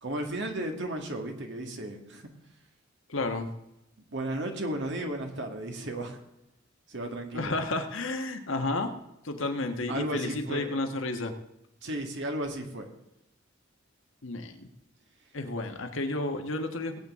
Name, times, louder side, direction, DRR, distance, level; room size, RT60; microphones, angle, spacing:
voice 1, 0.0-2.2 4.1-6.2 6.9-7.5 9.9-10.7 11.8-12.9, right 1 dB, 60° right, 3 dB, 1.9 m, -34 dB
voice 2, 3.1-3.5 7.3-8.9 9.2-11.3 14.2-14.7 15.3-17.0, left 2 dB, 70° left, 5 dB, 1.4 m, -31 dB
19.5 x 8.6 x 3.7 m, 0.88 s
head